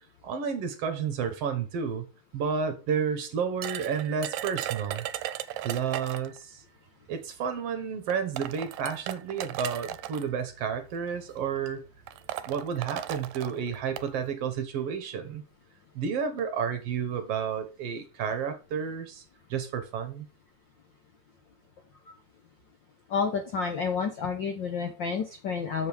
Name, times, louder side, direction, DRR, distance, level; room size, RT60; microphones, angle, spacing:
voice 1, 0.2-2.1 2.3-5.1 5.6-6.6 7.1-11.9 12.4-15.4 16.0-19.2 19.5-20.3, right 6 dB, 65° right, 1.8 m, -31 dB
sound 1, 3.6-6.4 7.5-7.6 8.1-10.2 11.2-11.4 11.7-11.8 12.1-14.1, right 12 dB, 80° right, 1.9 m, -36 dB
voice 2, 23.1-25.9, left 5 dB, 65° left, 1.1 m, -30 dB
7.0 x 5.3 x 6.0 m
omnidirectional pair, 3.4 m